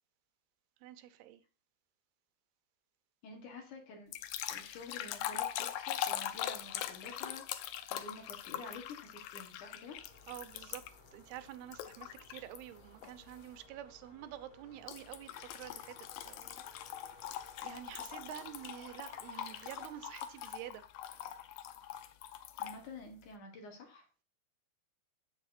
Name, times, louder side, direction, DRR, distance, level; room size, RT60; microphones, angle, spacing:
voice 1, 0.8-1.4 10.3-10.8 11.1-16.6 17.6-20.8, right 12 dB, 85° right, 2.8 m, -48 dB
voice 2, 3.2-4.1 4.5-10.0 22.6-24.2, left 3 dB, 60° left, 2.5 m, -50 dB
sound 1, 4.1-11.1 11.7-12.6 13.0-13.3 14.9-22.8, left 11 dB, 80° left, 1.9 m, -42 dB
sound 2, 10.0-20.5, left 1 dB, 40° left, 0.6 m, -60 dB
14.5 x 6.3 x 2.6 m
omnidirectional pair, 4.5 m